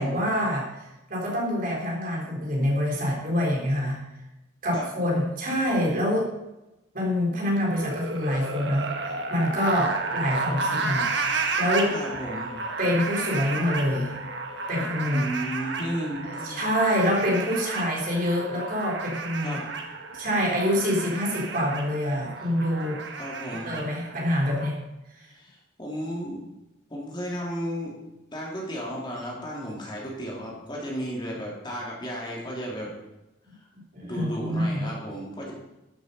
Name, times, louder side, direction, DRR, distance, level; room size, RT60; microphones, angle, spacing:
voice 1, 0.0-4.0 4.6-6.3 6.9-11.1 11.6-11.9 12.8-14.2 14.7-15.3 16.2-19.6 20.1-23.0 23.6-24.8 33.9-34.9, equal, 45° right, -3 dB, 3.7 m, -26 dB
sound 1, 7.7-24.7, right 4 dB, 65° right, 1.6 m, -32 dB
voice 2, 11.9-12.5 15.1-16.6 19.4-19.7 23.2-23.8 25.3-26.4 26.9-28.0 28.3-32.9 33.6-33.7 34.0-35.5, equal, 25° left, -4 dB, 3.1 m, -34 dB
12.5 x 7.8 x 5.5 m, 0.97 s
head